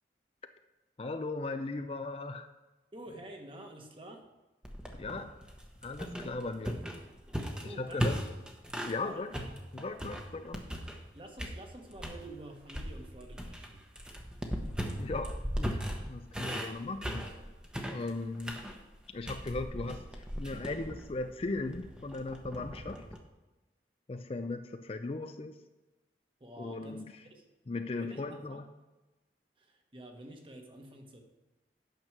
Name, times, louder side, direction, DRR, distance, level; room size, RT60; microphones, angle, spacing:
voice 1, 1.0-2.5 4.9-5.3 5.8-6.8 7.6-8.2 8.8-9.3 9.7-10.6 15.0-17.3 17.9-18.6 19.1-20.0 20.4-23.0 24.1-25.6 26.6-27.0 27.7-28.7, left 3 dB, 35° left, 8 dB, 0.4 m, -37 dB
voice 2, 2.9-4.3 6.5-6.7 7.6-8.2 9.0-9.3 10.3-10.5 11.1-13.8 26.4-27.5 28.0-28.6 29.6-31.2, right 1 dB, 30° right, 3 dB, 1.2 m, -49 dB
sound 1, 4.6-9.0 9.3-11.1 11.4-12.2 12.7-23.2, equal, 5° right, 0.9 m, -38 dB
9.2 x 6.0 x 6.0 m, 1.1 s
head